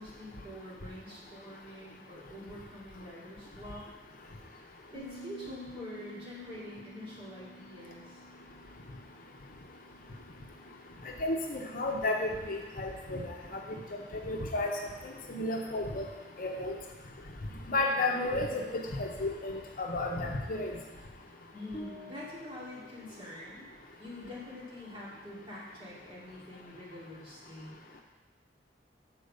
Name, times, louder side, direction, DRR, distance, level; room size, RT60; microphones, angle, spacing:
voice 1, 0.0-3.9 4.5-4.6 4.9-8.2 21.5-23.7 24.0-27.7, left 1 dB, 30° right, -7 dB, 2.5 m, -45 dB
Bass guitar, 5.0-11.2, right 1 dB, 85° left, 0.7 m, -53 dB
voice 2, 11.2-13.2 13.5-13.6 14.3-14.7 15.3-16.1 16.4-16.7 17.7-20.7, left 2 dB, 50° left, 1 dB, 0.8 m, -32 dB
sound 1, 21.7-23.9, left 1 dB, 20° left, 1.3 m, -49 dB
6.6 x 4.6 x 6.6 m, 1.2 s
head